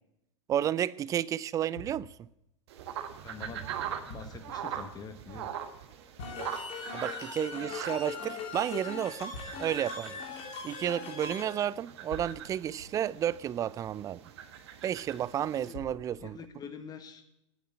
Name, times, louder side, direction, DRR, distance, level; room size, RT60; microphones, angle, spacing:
voice 1, 0.5-2.1 6.9-10.2 10.6-14.2 14.8-16.4, right 10 dB, 20° right, 0.4 m, -32 dB
sound 1, 1.8-2.5 4.1-4.6 6.2-6.8 9.3-9.9 12.1-13.5 15.7-16.6, left 2 dB, 65° left, 3.4 m, -48 dB
sound 2, 2.7-15.7, right 9 dB, 60° right, 1.4 m, -42 dB
voice 2, 3.2-3.7 4.1-5.5 15.5-15.8 16.2-17.2, left 5 dB, 25° left, 1.6 m, -45 dB
sound 3, 6.2-11.5, left 5 dB, 45° left, 3.3 m, -40 dB
9.4 x 9.2 x 8.5 m
figure-of-eight pair, 90°, 16 cm